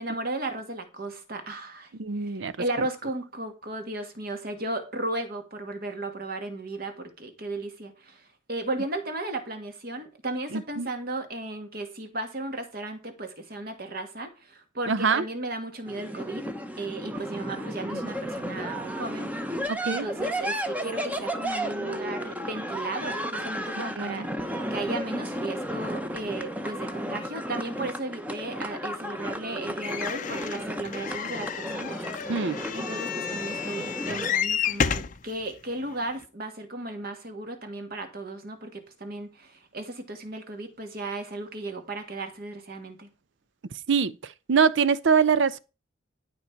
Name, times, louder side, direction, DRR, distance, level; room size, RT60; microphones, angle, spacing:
voice 1, 0.0-1.9 2.2-16.5 16.8-19.3 19.8-32.3 32.7-43.1, right 2 dB, 50° right, 1.7 m, -35 dB
voice 2, 2.0-2.5 2.8-2.9 10.5-10.9 14.9-15.2 19.7-20.1 24.0-24.3 32.3-32.6 43.9-44.1 44.5-45.6, right 6 dB, 70° right, 0.5 m, -23 dB
sound 1, 15.9-34.3, equal, 10° right, 0.8 m, -33 dB
sound 2, 29.8-35.2 35.9-36.0 36.2-36.3, left 7 dB, 40° left, 0.5 m, -31 dB
11.5 x 5.3 x 4.5 m
head